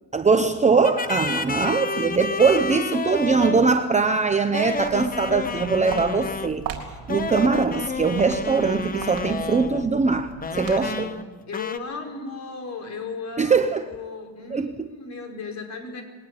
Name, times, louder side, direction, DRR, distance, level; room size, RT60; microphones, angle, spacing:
voice 1, 0.1-6.7 7.1-11.1 13.4-13.9 14.5-14.9, right 4 dB, 15° right, 7 dB, 0.8 m, -21 dB
sound 1, 0.8-3.8 4.5-6.6 7.1-9.9 10.4-11.3 11.5-11.8, left 4 dB, 20° left, 1.0 m, -30 dB
Walk footsteps, 4.7-11.1, right 7 dB, 50° right, 3.9 m, -39 dB
voice 2, 10.7-16.0, left 4 dB, 40° left, 3 dB, 5.1 m, -36 dB
21.0 x 18.5 x 9.7 m, 1.4 s
cardioid pair, 140°, 43 cm